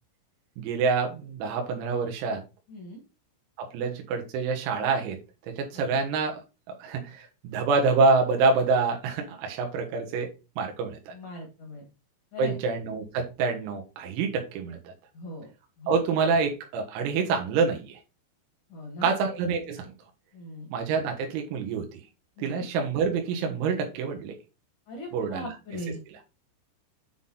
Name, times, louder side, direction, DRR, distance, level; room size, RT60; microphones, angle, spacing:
voice 1, 0.6-2.4 3.6-5.2 5.5-6.4 6.8-11.1 12.4-14.9 15.9-18.0 19.0-19.9 20.7-22.0 22.4-24.4 25.1-25.5, right 4 dB, 90° right, 4.1 m, -27 dB
voice 2, 2.7-3.0 5.7-5.9 11.1-11.8 12.3-12.5 15.1-15.5 15.8-15.9 18.7-19.1 20.3-20.7 22.4-22.7 24.9-26.0, left 1 dB, 60° left, 2.2 m, -39 dB
9.2 x 4.0 x 3.9 m
omnidirectional pair, 5.9 m